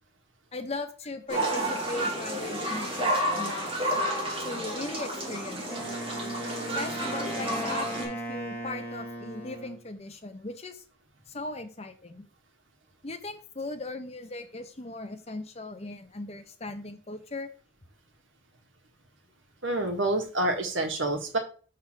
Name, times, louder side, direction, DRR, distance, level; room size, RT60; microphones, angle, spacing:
voice 1, 0.5-3.9 4.4-5.8 6.7-10.8 11.3-12.3 13.0-17.5, left 2 dB, 35° left, 8 dB, 0.8 m, -38 dB
sound 1, 1.3-8.0, right 1 dB, 30° right, 2.1 m, -31 dB
Wind instrument woodwind instrument, 5.7-9.8, right 1 dB, 10° left, 1.5 m, -37 dB
voice 2, 19.6-21.4, right 2 dB, 90° right, 4 dB, 1.5 m, -27 dB
6.2 x 3.6 x 5.8 m, 0.39 s
head